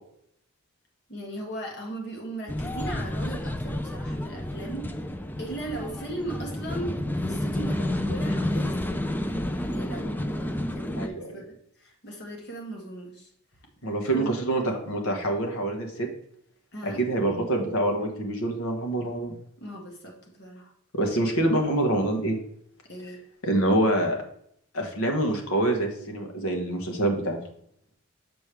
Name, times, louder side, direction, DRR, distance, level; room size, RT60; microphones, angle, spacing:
voice 1, 1.1-5.1 5.4-13.3 14.1-14.4 14.6-14.7 16.7-17.0 19.6-20.7 22.9-23.2, right 2 dB, 55° left, 0 dB, 1.9 m, -38 dB
sound 1, 2.5-11.1, left 1 dB, 10° left, 0.4 m, -30 dB
voice 2, 11.0-11.4 13.8-16.1 16.8-19.3 20.9-22.4 23.4-24.2 24.7-27.4, right 1 dB, 80° left, 2 dB, 1.6 m, -26 dB
6.9 x 6.3 x 3.4 m, 0.70 s
head